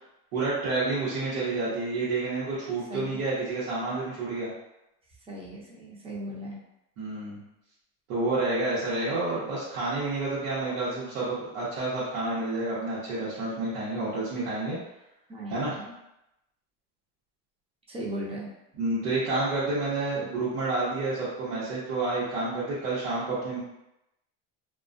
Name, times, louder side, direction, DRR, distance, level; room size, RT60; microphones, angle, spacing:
voice 1, 0.3-4.5 7.0-7.4 8.1-14.8 15.5-15.7 18.7-23.6, right 2 dB, 90° right, -10 dB, 0.9 m, -29 dB
voice 2, 2.9-3.2 5.3-6.6 15.3-15.9 17.9-18.5, equal, 20° right, -4 dB, 0.6 m, -37 dB
2.3 x 2.2 x 2.5 m, 0.88 s
cardioid pair, 135°, 32 cm